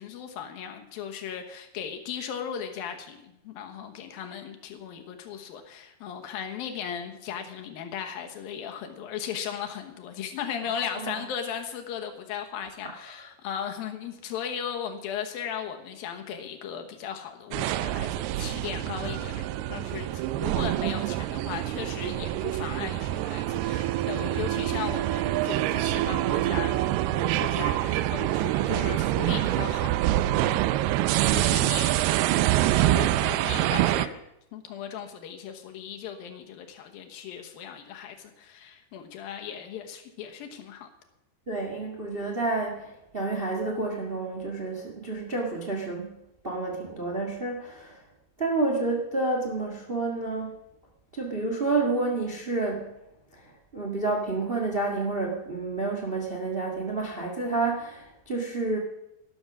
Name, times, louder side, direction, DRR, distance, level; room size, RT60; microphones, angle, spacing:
voice 1, 0.0-30.6 31.2-32.0 32.3-34.2 34.5-40.9, left 8 dB, 70° left, 5 dB, 2.8 m, -37 dB
sound 1, 17.5-34.1, right 14 dB, 85° right, 2.6 m, -26 dB
voice 2, 41.5-46.2 46.4-48.0 48.4-50.5 51.1-52.9 53.3-53.4 53.7-58.8, right 3 dB, 50° right, 1 dB, 0.6 m, -29 dB
12.5 x 11.5 x 6.1 m, 0.88 s
omnidirectional pair, 4.5 m